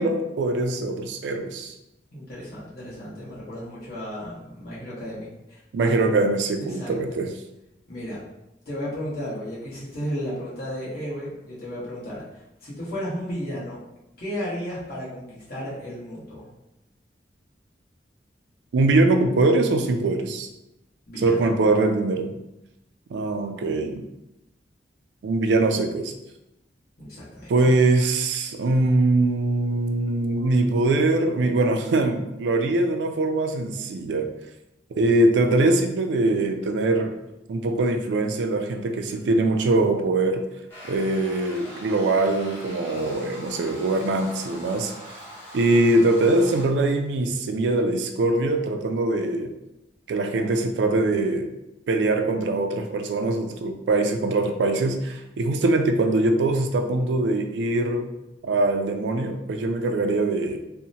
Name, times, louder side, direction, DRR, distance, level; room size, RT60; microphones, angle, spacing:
voice 1, 0.0-1.7 5.7-7.3 18.7-20.5 21.2-22.3 23.1-24.0 25.2-26.1 27.5-34.3 34.9-37.1 37.5-40.4 40.9-44.9 45.5-49.5 50.1-51.5 51.9-58.1 58.4-60.6, right 2 dB, 80° right, 5 dB, 0.3 m, -22 dB
voice 2, 2.1-6.1 6.6-7.2 7.9-8.2 8.6-13.8 14.2-16.5 21.1-21.5 27.0-27.5, equal, 55° left, -8 dB, 1.1 m, -34 dB
sound 1, 40.7-46.7, equal, 15° left, 1.0 m, -42 dB
2.8 x 2.0 x 2.6 m, 0.93 s
head